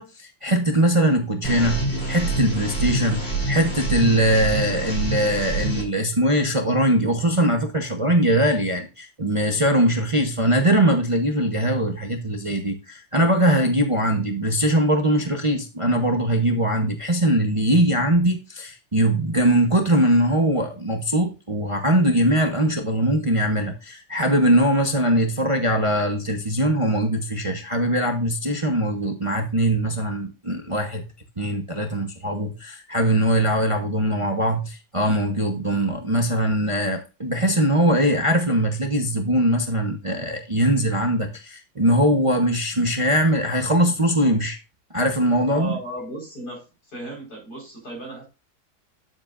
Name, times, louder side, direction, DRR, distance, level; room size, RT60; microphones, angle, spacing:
voice 1, 0.0-31.0 31.4-44.6 44.9-45.7, right 1 dB, 25° right, 0.8 m, -21 dB
sound 1, 1.4-5.8, right 2 dB, 35° left, 2.9 m, -26 dB
voice 2, 45.5-48.2, right 1 dB, 80° left, 5.1 m, -35 dB
9.4 x 7.5 x 2.5 m
omnidirectional pair, 1.7 m